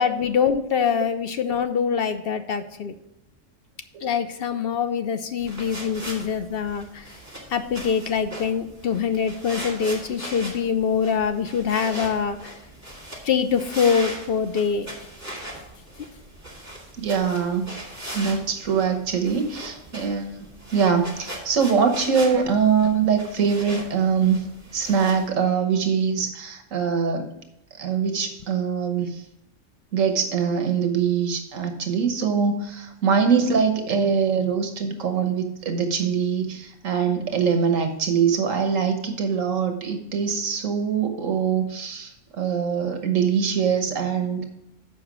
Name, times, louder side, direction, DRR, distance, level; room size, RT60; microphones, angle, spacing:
voice 1, 0.0-2.9 4.0-7.1 7.5-12.5 13.2-14.9, left 6 dB, 55° left, 9 dB, 0.7 m, -24 dB
sound 1, 5.4-25.3, right 1 dB, 10° right, 2.2 m, -39 dB
voice 2, 17.0-17.7 18.1-24.4 24.7-27.3 27.8-29.2 29.9-44.4, right 6 dB, 80° right, 6 dB, 1.4 m, -23 dB
7.2 x 5.2 x 6.1 m, 0.84 s
omnidirectional pair, 1.3 m